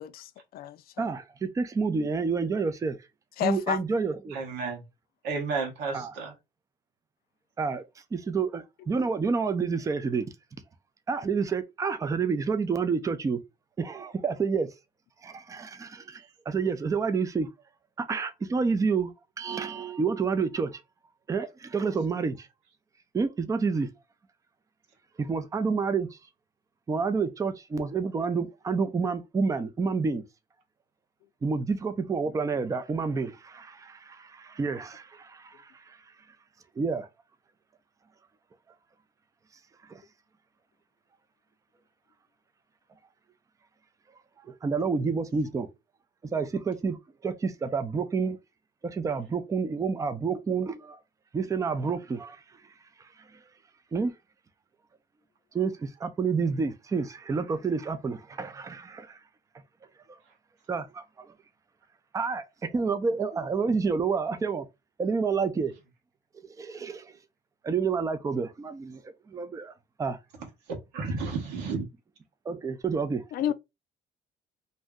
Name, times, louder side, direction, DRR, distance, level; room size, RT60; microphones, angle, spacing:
voice 1, 0.0-0.9 3.4-3.8 73.3-73.5, left 11 dB, 60° left, 0.4 m, -30 dB
voice 2, 1.6-3.0 3.4-4.4 5.9-6.1 7.6-10.3 11.1-13.4 13.8-14.7 15.2-17.5 18.0-20.8 21.3-22.5 23.1-23.9 25.2-26.2 26.9-30.2 31.4-36.1 36.8-37.1 39.8-40.0 44.4-45.7 46.2-48.4 48.8-51.0 51.3-53.4 53.9-54.1 55.5-59.2 60.1-60.2 60.7-61.3 62.1-64.7 65.0-65.7 66.3-67.2 67.6-70.2 72.5-73.2, right 5 dB, 20° right, 0.4 m, -29 dB
voice 3, 4.3-4.9 5.2-6.3 60.2-60.3 70.7-71.8, right 4 dB, 90° right, 1.1 m, -32 dB
2.6 x 2.0 x 3.5 m
cardioid pair, 110°, 17 cm